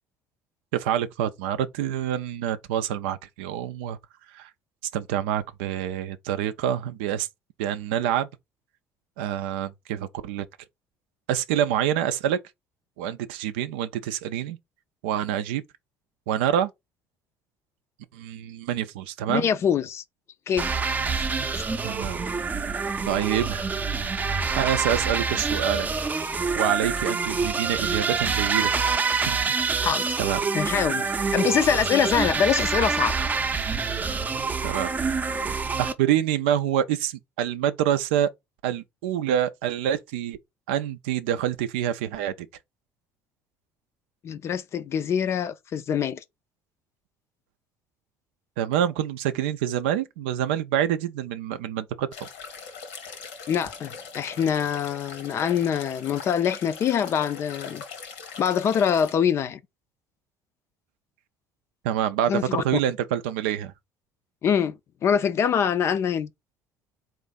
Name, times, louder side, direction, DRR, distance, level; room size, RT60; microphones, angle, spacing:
voice 1, 0.7-4.0 4.3-4.5 4.9-7.3 7.6-8.3 9.2-10.5 11.3-12.4 13.0-14.6 15.0-15.6 16.3-16.7 18.1-19.5 21.8-22.2 23.1-23.7 24.6-25.9 26.6-28.7 29.3-29.4 30.2-30.4 34.6-34.9 35.8-38.3 38.6-40.4 40.7-42.3 48.6-52.3 61.8-63.7, right 10 dB, 85° right, 0.4 m, -26 dB
voice 2, 19.3-20.0 20.5-20.7 21.5-21.7 29.8-30.1 30.5-33.2 44.2-46.2 53.5-57.8 58.4-59.6 62.3-62.6 64.4-66.3, left 8 dB, 50° left, 0.4 m, -24 dB
sound 1, 20.6-35.9, right 4 dB, 30° right, 0.5 m, -26 dB
sound 2, 52.1-59.2, left 5 dB, 85° left, 1.0 m, -41 dB
3.7 x 2.5 x 3.9 m
hypercardioid pair, 65°, 6 cm